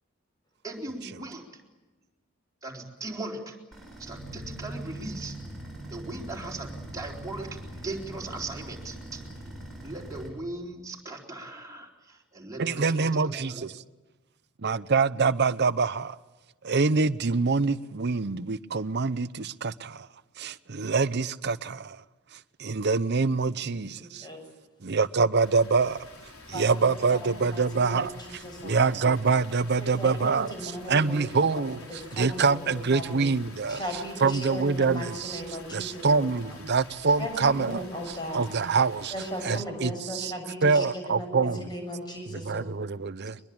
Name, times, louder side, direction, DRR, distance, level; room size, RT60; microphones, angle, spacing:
voice 1, 0.6-1.6 2.6-3.6 4.0-5.4 5.9-9.2 9.8-13.6, right 2 dB, 15° right, 4.0 m, -38 dB
sound 1, 3.7-10.3, right 1 dB, ahead, 7.3 m, -41 dB
voice 2, 12.6-13.8 14.6-16.2 16.6-20.1 20.4-22.0 22.6-24.3 24.8-26.1 26.5-33.8 34.2-35.4 35.7-39.1 39.4-40.3 40.6-41.7 42.3-43.4, right 4 dB, 50° right, 0.7 m, -25 dB
voice 3, 23.7-24.4 26.5-28.7 29.8-31.5 31.9-33.3 33.7-36.6 37.2-38.6 39.1-42.9, equal, 20° left, 7.2 m, -37 dB
Water, 25.4-39.6, left 3 dB, 75° left, 4.3 m, -49 dB
23.0 x 21.5 x 8.7 m
head